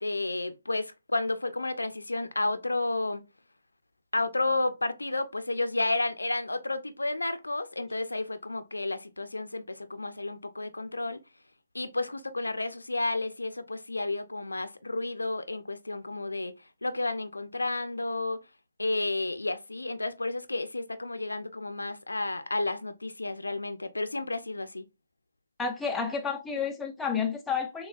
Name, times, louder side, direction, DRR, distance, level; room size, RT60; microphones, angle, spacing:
voice 1, 0.0-3.2 4.1-11.2 11.7-16.5 16.8-18.4 18.8-24.8, left 2 dB, 85° left, 0.5 m, -31 dB
voice 2, 25.6-27.9, left 6 dB, 5° left, 0.5 m, -30 dB
6.3 x 2.3 x 2.4 m
figure-of-eight pair, 145°, 0 cm